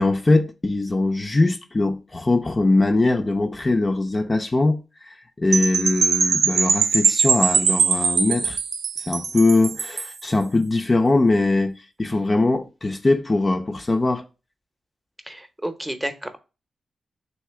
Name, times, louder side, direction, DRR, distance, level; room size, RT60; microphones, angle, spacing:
voice 1, 0.0-8.6 9.1-11.7 12.0-14.2, left 2 dB, 35° left, 0.5 m, -21 dB
Percussion / Wind chime, 5.5-10.2, right 5 dB, 80° right, 0.4 m, -21 dB
voice 2, 15.2-16.4, right 1 dB, 10° right, 0.7 m, -31 dB
3.3 x 2.8 x 4.5 m
cardioid pair, 50°, 0 cm